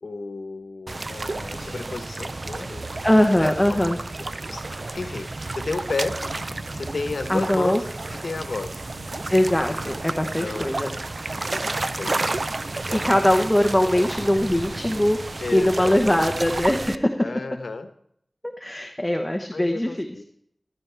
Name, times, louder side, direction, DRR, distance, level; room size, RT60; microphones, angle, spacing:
voice 1, 0.0-2.8 3.4-3.8 4.5-4.6 4.9-6.2 6.7-8.8 10.2-10.7 11.4-11.7 12.0-12.3 15.4-16.3 17.2-17.9 19.5-20.2, left 3 dB, 80° left, 8 dB, 1.0 m, -32 dB
sound 1, 0.9-17.0, right 2 dB, 50° right, 0.4 m, -31 dB
voice 2, 3.0-4.0 7.3-7.8 9.3-10.9 12.9-17.2 18.6-20.1, left 1 dB, 10° left, 4 dB, 1.0 m, -21 dB
sound 2, 4.5-15.2, right 1 dB, 70° right, 2.6 m, -44 dB
14.5 x 12.0 x 3.4 m, 0.70 s
wide cardioid pair, 75°, 0 cm